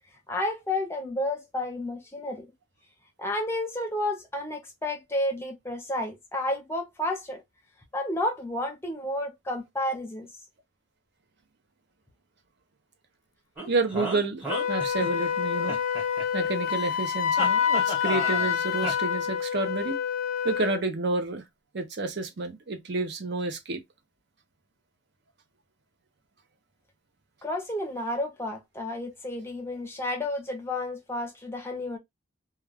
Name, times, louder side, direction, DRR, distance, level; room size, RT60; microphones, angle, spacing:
voice 1, 0.3-2.5 3.2-7.4 7.9-10.3 27.4-32.0, left 1 dB, 10° left, 0.6 m, -31 dB
sound 1, 13.6-15.3 15.7-16.7 17.4-18.5 18.8-18.9, right 1 dB, 5° right, 1.1 m, -34 dB
voice 2, 13.7-15.8 16.3-20.0 20.4-21.4 21.7-23.8, right 3 dB, 55° right, 0.6 m, -29 dB
Wind instrument woodwind instrument, 14.5-20.8, left 8 dB, 80° left, 0.4 m, -27 dB
2.3 x 2.2 x 3.3 m
head